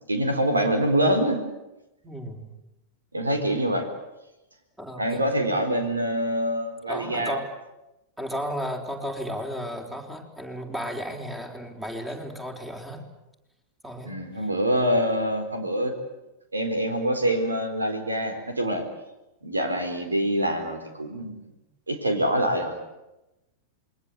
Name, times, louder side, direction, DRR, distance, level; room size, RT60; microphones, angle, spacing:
voice 1, 0.1-1.4 3.1-3.9 4.9-7.4 14.0-15.9 16.5-18.8 19.4-21.4 21.9-22.8, right 1 dB, 80° right, 6 dB, 4.2 m, -25 dB
voice 2, 2.0-2.5 4.8-5.2 6.9-7.5 8.2-13.0 13.8-14.2, equal, 10° right, 2 dB, 4.5 m, -34 dB
27.5 x 22.0 x 8.2 m, 0.95 s
figure-of-eight pair, 90°, 0 cm